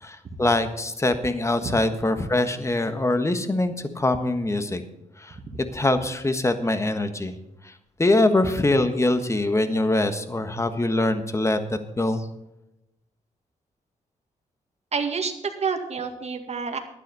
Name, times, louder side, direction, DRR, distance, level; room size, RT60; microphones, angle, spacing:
voice 1, 0.0-4.8 5.2-5.4 5.7-7.3 7.6-7.7 8.0-11.6 12.0-12.2, left 2 dB, 20° left, 9 dB, 1.5 m, -23 dB
voice 2, 14.9-16.8, right 5 dB, 55° right, 5 dB, 2.0 m, -28 dB
12.0 x 10.0 x 5.4 m, 0.90 s
cardioid pair, 85°, 14 cm